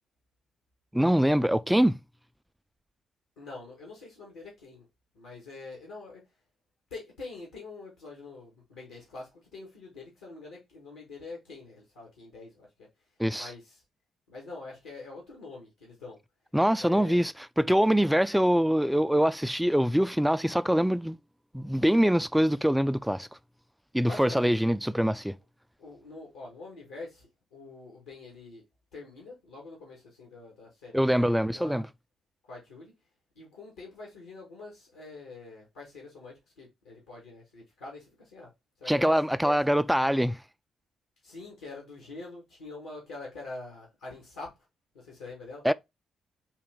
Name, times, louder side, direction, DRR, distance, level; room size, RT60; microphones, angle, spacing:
voice 1, 0.9-2.0 13.2-13.5 16.5-21.2 21.5-23.3 23.9-25.4 30.9-31.9 38.9-40.4 45.6-45.7, equal, 5° right, 0.3 m, -24 dB
voice 2, 3.4-4.9 5.1-6.2 6.9-12.7 13.3-13.8 14.3-16.2 16.8-17.2 24.0-24.5 25.8-28.6 28.9-31.9 32.5-32.9 33.3-38.5 38.8-39.6 41.2-44.5 44.9-45.6, left 3 dB, 85° left, 1.4 m, -45 dB
3.9 x 2.6 x 3.4 m
hypercardioid pair, 45°, 0 cm